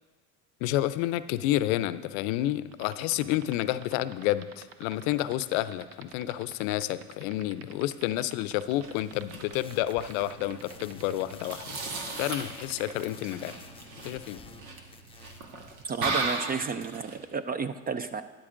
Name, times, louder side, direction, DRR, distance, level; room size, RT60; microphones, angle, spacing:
voice 1, 0.6-11.8 12.2-13.6 14.0-14.4, left 14 dB, 70° left, 15 dB, 0.6 m, -30 dB
sound 1, 2.7-13.0, right 9 dB, 65° right, 0.9 m, -47 dB
sound 2, 8.6-17.2, right 3 dB, 85° right, 1.4 m, -37 dB
sound 3, 9.5-14.6 14.9-15.5, left 5 dB, 15° left, 0.6 m, -51 dB
voice 2, 15.9-18.2, right 5 dB, 25° right, 12 dB, 0.3 m, -32 dB
12.5 x 10.5 x 2.5 m, 1.2 s
hypercardioid pair, 80°, 42 cm